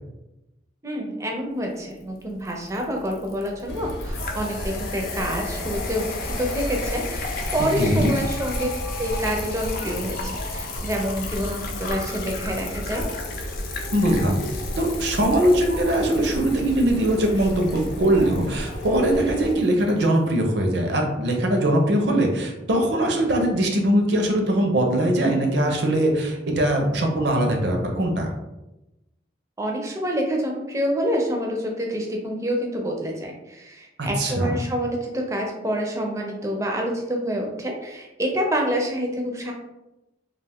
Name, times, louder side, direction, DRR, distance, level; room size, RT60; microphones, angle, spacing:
voice 1, 0.8-8.7 9.0-13.0 29.6-39.5, equal, 15° right, 1 dB, 0.4 m, -27 dB
sound 1, 2.0-20.0, left 4 dB, 50° left, 0.4 m, -36 dB
sound 2, 3.7-19.5, equal, 90° left, 0.8 m, -33 dB
voice 2, 7.8-8.1 13.9-14.5 14.8-28.3 34.0-34.5, right 1 dB, 65° right, 2 dB, 0.5 m, -21 dB
2.3 x 2.3 x 3.4 m, 0.98 s
head